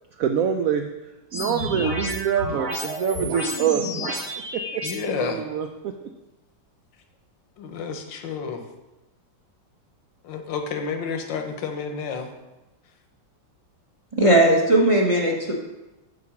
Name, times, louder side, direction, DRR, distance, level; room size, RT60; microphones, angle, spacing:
voice 1, 0.2-0.9 1.3-4.2 4.5-4.8 5.2-6.0, right 8 dB, 75° right, 6 dB, 0.7 m, -25 dB
sound 1, 1.3-4.9, equal, 50° right, 2.9 m, -30 dB
voice 2, 4.8-5.4 7.6-8.6 10.2-12.3, left 5 dB, 75° left, 5 dB, 1.6 m, -30 dB
voice 3, 14.1-15.5, right 1 dB, 25° right, -1 dB, 0.8 m, -18 dB
7.7 x 4.6 x 7.1 m, 1.0 s
omnidirectional pair, 2.0 m